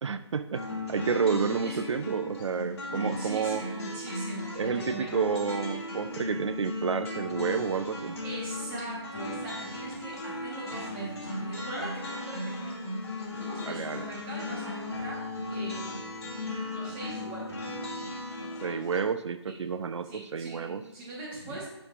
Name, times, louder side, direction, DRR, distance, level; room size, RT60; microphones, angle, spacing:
voice 1, 0.0-3.6 4.6-8.2 13.6-14.1 18.6-20.8 21.5-21.6, right 6 dB, 80° right, 11 dB, 0.4 m, -30 dB
sound 1, 0.5-19.0, left 2 dB, 60° left, 2.5 m, -36 dB
voice 2, 2.9-5.2 8.2-12.7 13.4-15.2 15.5-16.0 16.3-17.6 18.4-18.8 19.5-19.6 20.0-21.7, right 2 dB, 10° right, -4 dB, 1.2 m, -41 dB
11.0 x 5.3 x 2.4 m, 1.0 s
hypercardioid pair, 170°, 15 cm